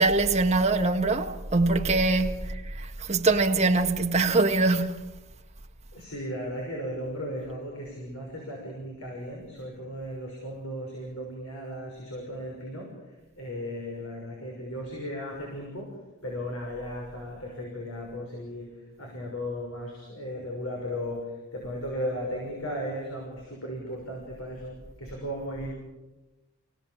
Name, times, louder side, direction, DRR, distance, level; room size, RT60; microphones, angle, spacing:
voice 1, 0.0-2.4 3.1-5.0, right 3 dB, 30° right, 1.6 m, -23 dB
voice 2, 5.9-25.7, equal, 70° left, 6.2 m, -36 dB
28.5 x 17.5 x 7.6 m
head